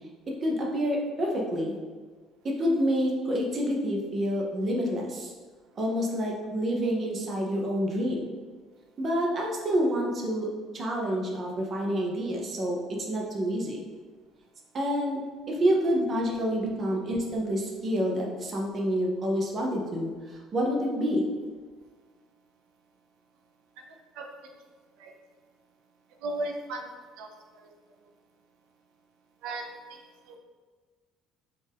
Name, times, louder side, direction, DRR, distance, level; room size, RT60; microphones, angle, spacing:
voice 1, 0.3-1.8 2.4-5.3 5.8-8.3 9.0-10.5 10.7-12.8 13.1-13.8 14.7-15.2 15.5-21.3, equal, 25° right, -1 dB, 0.5 m, -28 dB
voice 2, 26.2-26.8 27.2-27.3 27.6-27.7 29.4-30.0 30.3-30.4, right 2 dB, 80° right, 2 dB, 0.5 m, -35 dB
4.3 x 2.4 x 3.4 m, 1.5 s
cardioid pair, 180°, 0 cm